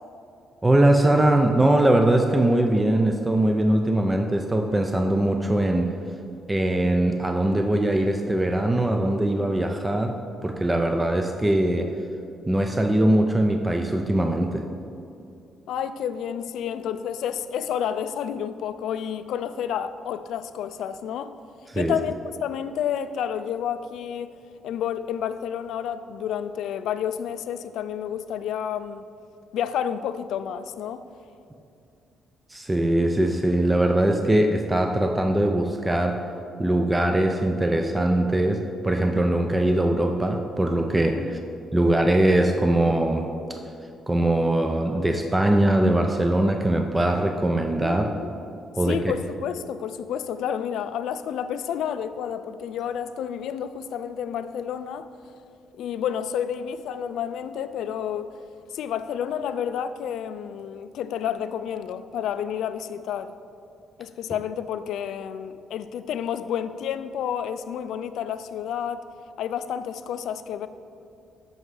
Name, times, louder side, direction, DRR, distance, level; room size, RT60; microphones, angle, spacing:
voice 1, 0.6-5.9 6.5-10.2 10.4-11.9 12.5-14.6 21.7-22.0 32.5-36.2 36.6-41.4 41.7-43.3 44.1-48.1 48.8-49.1, right 1 dB, 15° right, 4 dB, 0.4 m, -21 dB
voice 2, 15.7-21.3 21.8-24.3 24.6-29.1 29.5-31.0 41.2-41.4 47.8-48.3 48.8-55.1 55.8-58.3 58.7-63.3 64.0-69.0 69.4-70.7, left 9 dB, 80° left, 12 dB, 0.3 m, -30 dB
7.8 x 5.4 x 4.8 m, 2.6 s
cardioid pair, 90°, 0 cm